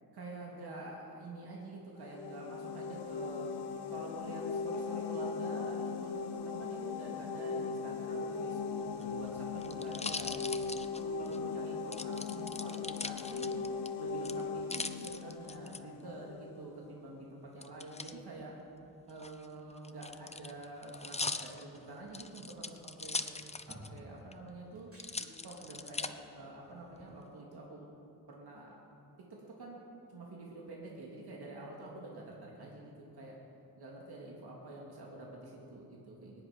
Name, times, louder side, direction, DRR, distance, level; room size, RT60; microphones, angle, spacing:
voice 1, 0.1-3.6 3.9-10.3 10.7-13.5 14.0-18.5 19.1-23.3 23.7-24.9 25.4-27.9 28.3-28.8 29.3-29.8 30.1-33.4 33.8-36.5, right 2 dB, 80° right, -3 dB, 2.5 m, -47 dB
sound 1, 2.0-16.6, left 5 dB, 90° left, 0.9 m, -39 dB
sound 2, 8.9-11.4 11.9-13.9 14.2-15.8 17.6-18.1 19.1-24.0 24.3-24.4 25.0-26.1 26.7-27.3, left 3 dB, 15° left, 0.6 m, -41 dB
sound 3, 23.1-24.1 24.6-25.9 27.0-27.1, equal, 35° right, 4.5 m, -55 dB
23.0 x 10.5 x 5.2 m, 2.7 s
cardioid pair, 75°, 38 cm